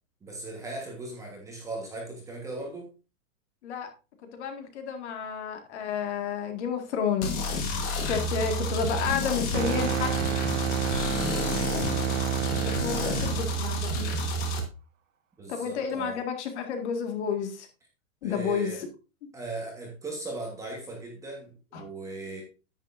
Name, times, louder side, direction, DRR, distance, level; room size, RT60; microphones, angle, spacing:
voice 1, 0.2-2.9 15.4-16.2 18.2-18.8 19.3-22.4, right 2 dB, 5° right, 0 dB, 1.3 m, -38 dB
voice 2, 4.3-7.4 8.1-10.5 10.8-12.1 12.6-14.4 15.5-17.7 18.2-18.9 21.7-21.9, left 7 dB, 50° left, 6 dB, 2.0 m, -31 dB
sound 1, 7.2-14.6, equal, 20° left, 1.3 m, -29 dB
sound 2, 9.5-13.5, right 8 dB, 60° right, 1.5 m, -30 dB
9.8 x 9.1 x 2.6 m, 0.31 s
supercardioid pair, 170°, 43 cm